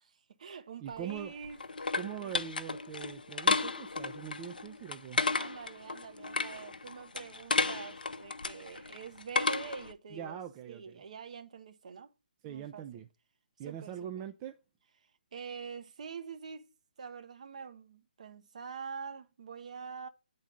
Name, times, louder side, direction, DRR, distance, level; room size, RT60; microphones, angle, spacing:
voice 1, 0.0-2.4 5.4-10.4 10.7-12.1 12.5-13.0 13.6-14.2 15.3-16.7 17.0-20.1, right 6 dB, 45° right, 0.8 m, -45 dB
voice 2, 0.8-1.3 1.9-5.2 10.1-11.0 12.4-13.1 13.6-14.5, right 10 dB, 20° right, 0.4 m, -42 dB
sound 1, 0.9-9.9, left 3 dB, 65° left, 0.6 m, -34 dB
9.0 x 3.9 x 5.0 m
figure-of-eight pair, 140°, 5 cm